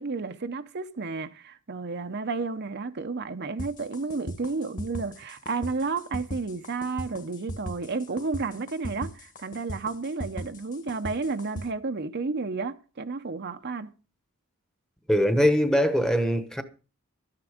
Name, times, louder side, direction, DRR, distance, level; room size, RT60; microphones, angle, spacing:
voice 1, 0.0-13.9, right 4 dB, 50° right, 0.7 m, -32 dB
sound 1, 3.6-11.7, equal, 35° left, 1.7 m, -37 dB
voice 2, 15.1-16.6, equal, ahead, 1.0 m, -22 dB
13.0 x 9.7 x 5.0 m
head